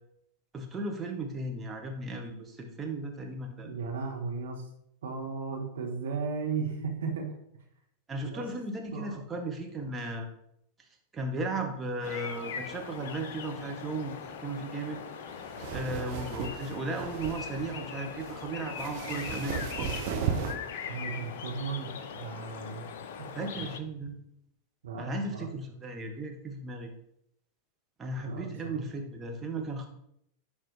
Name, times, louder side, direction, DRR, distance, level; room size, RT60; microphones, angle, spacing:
voice 1, 0.5-3.7 8.1-10.3 11.1-15.0 15.7-19.9 23.3-24.2 25.0-26.9 28.0-29.9, right 2 dB, 15° right, 2 dB, 1.2 m, -36 dB
voice 2, 3.6-4.6 5.0-7.3 8.2-8.4 8.9-9.2 20.9-22.9 23.2-23.3 23.6-23.7 24.8-25.5 28.2-28.8, right 5 dB, 65° right, 1 dB, 1.4 m, -35 dB
sound 1, 12.0-23.8, left 7 dB, 55° left, 0.5 m, -41 dB
sound 2, 15.3-20.5, right 7 dB, 45° right, 0.9 m, -35 dB
10.0 x 3.5 x 3.3 m, 0.74 s
figure-of-eight pair, 90°, 0 cm